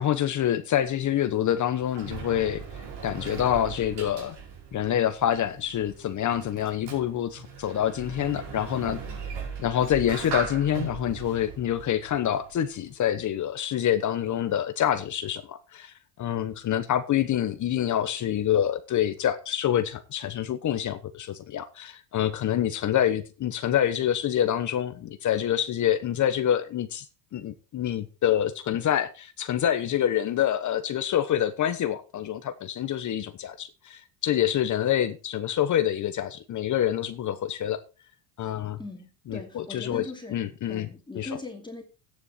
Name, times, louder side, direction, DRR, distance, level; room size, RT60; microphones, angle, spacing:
voice 1, 0.0-2.6 3.0-4.4 4.7-9.0 9.6-27.1 27.3-37.8 38.4-38.8 39.3-40.0 40.3-40.9 41.1-41.3, left 10 dB, 40° left, 1.1 m, -26 dB
Sliding door, 1.5-12.8, right 5 dB, 55° right, 5.1 m, -39 dB
voice 2, 38.8-40.4 40.7-41.8, left 3 dB, 10° left, 2.5 m, -40 dB
12.0 x 9.8 x 4.2 m
supercardioid pair, 115°, 48 cm